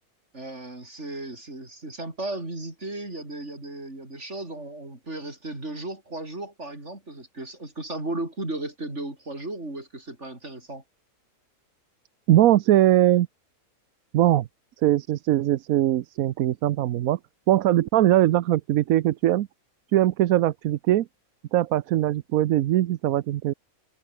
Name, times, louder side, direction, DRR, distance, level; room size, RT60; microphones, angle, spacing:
voice 1, 0.3-10.8, right 2 dB, 50° right, 6.1 m, -35 dB
voice 2, 12.3-13.3 14.1-14.5 14.8-17.2 17.5-19.5 19.9-21.1 21.5-23.5, right 13 dB, 75° right, 1.1 m, -21 dB
omnidirectional pair, 1.5 m